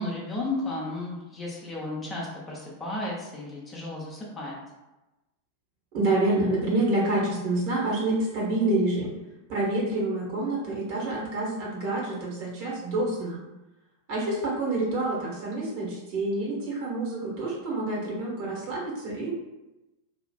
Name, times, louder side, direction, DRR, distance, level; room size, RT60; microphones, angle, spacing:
voice 1, 0.0-4.6, left 2 dB, 20° left, -4 dB, 0.7 m, -33 dB
voice 2, 5.9-9.1 9.5-13.4 14.1-19.3, right 2 dB, 45° right, -4 dB, 1.1 m, -27 dB
2.9 x 2.4 x 2.3 m, 1.0 s
figure-of-eight pair, 90°, 0 cm